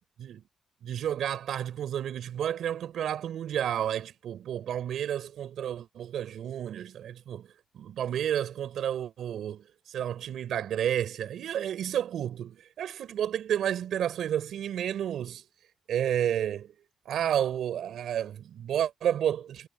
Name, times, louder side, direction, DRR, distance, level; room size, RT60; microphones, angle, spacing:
voice 1, 0.8-7.5 7.7-15.4 15.9-16.7 17.1-19.7, right 10 dB, 80° right, 5.6 m, -31 dB
wide cardioid pair, 165°, 0 cm